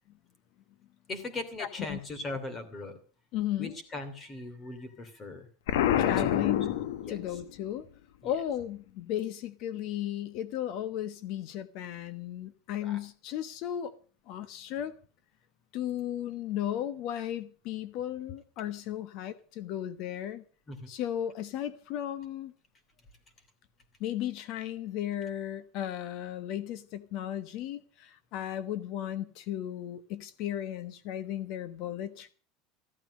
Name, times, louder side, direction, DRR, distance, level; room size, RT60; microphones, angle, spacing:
voice 1, 1.1-3.0 3.6-5.5 6.2-6.5 7.0-7.2 8.2-8.3 12.8-13.0 20.7-20.9, left 2 dB, 20° left, 2.9 m, -39 dB
voice 2, 1.6-2.0 2.3-2.4 3.3-3.7 6.0-6.8 7.1-7.9 8.2-13.9 14.3-15.0 15.7-20.4 20.9-22.5 24.0-32.3, left 11 dB, 50° left, 1.1 m, -35 dB
Explosion, 5.7-7.5, left 11 dB, 80° left, 1.2 m, -27 dB
14.0 x 12.5 x 6.5 m
supercardioid pair, 155°, 0 cm